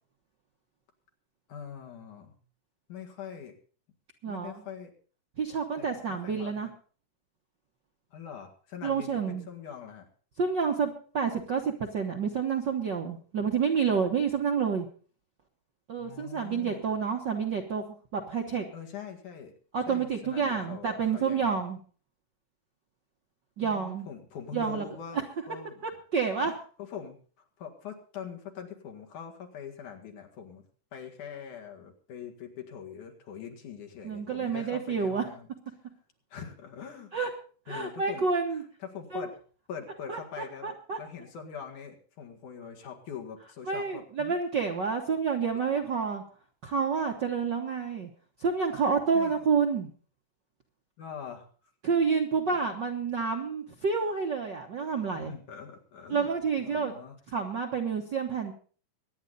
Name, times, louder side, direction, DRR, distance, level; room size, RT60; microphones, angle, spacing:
voice 1, 1.5-2.4 2.9-3.6 4.3-4.9 5.8-6.7 8.1-10.1 16.0-16.9 18.7-19.5 19.9-21.6 23.6-25.8 26.4-30.7 30.9-35.5 36.3-37.1 37.7-39.4 39.7-44.4 49.1-49.4 51.0-51.7 55.1-56.3 56.6-57.2, left 7 dB, 70° left, 3 dB, 3.4 m, -43 dB
voice 2, 4.2-4.5 5.4-6.7 8.8-9.5 10.4-14.9 15.9-18.7 19.7-21.8 23.6-24.1 24.5-24.8 25.8-26.5 34.0-35.2 37.1-37.3 37.7-38.6 39.1-39.3 40.1-41.0 43.7-46.2 46.6-48.1 48.4-49.9 51.8-55.3 56.1-56.9 57.3-58.5, right 5 dB, 55° right, 2 dB, 1.2 m, -29 dB
23.5 x 9.7 x 4.0 m, 0.42 s
omnidirectional pair, 3.6 m